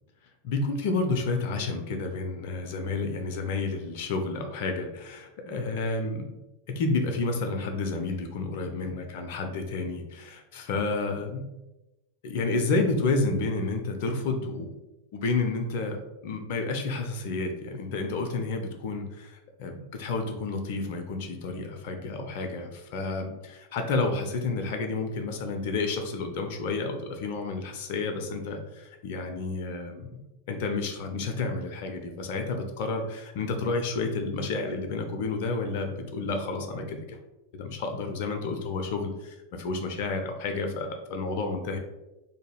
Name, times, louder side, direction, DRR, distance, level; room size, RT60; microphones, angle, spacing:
voice 1, 0.4-6.2 6.7-11.5 12.2-14.7 15.1-16.0 16.2-30.2 30.5-37.2 37.5-41.8, left 3 dB, 50° left, 4 dB, 0.4 m, -30 dB
2.5 x 2.2 x 3.2 m, 0.99 s
figure-of-eight pair, 90°, 0 cm